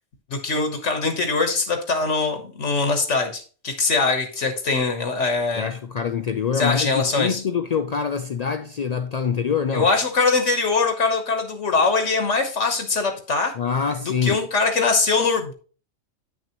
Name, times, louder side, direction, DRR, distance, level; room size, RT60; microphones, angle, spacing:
voice 1, 0.3-5.7 6.5-7.4 9.7-13.5 14.2-15.5, left 4 dB, 70° left, 1.5 m, -22 dB
voice 2, 5.6-9.9 13.6-14.5, left 6 dB, 90° left, 0.3 m, -25 dB
9.4 x 6.3 x 2.9 m
omnidirectional pair, 1.3 m